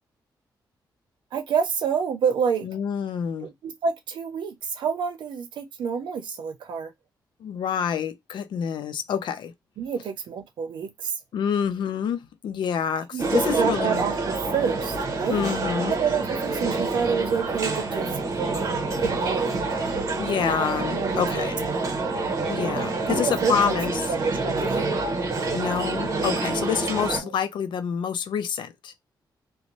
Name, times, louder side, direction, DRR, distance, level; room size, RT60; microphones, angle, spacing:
voice 1, 1.3-2.7 3.4-6.9 9.8-11.1 13.1-15.4 15.9-18.1 19.0-19.5 20.9-21.9 23.1-23.8 24.1-24.9 27.1-27.3, right 6 dB, 85° right, 0.7 m, -28 dB
voice 2, 2.6-3.5 7.4-9.5 11.3-14.0 15.3-15.9 20.2-21.7 22.5-24.1 25.5-28.9, left 7 dB, 80° left, 0.5 m, -27 dB
sound 1, 13.2-27.2, right 3 dB, 45° right, 0.8 m, -27 dB
2.6 x 2.1 x 2.9 m
wide cardioid pair, 140°, 8 cm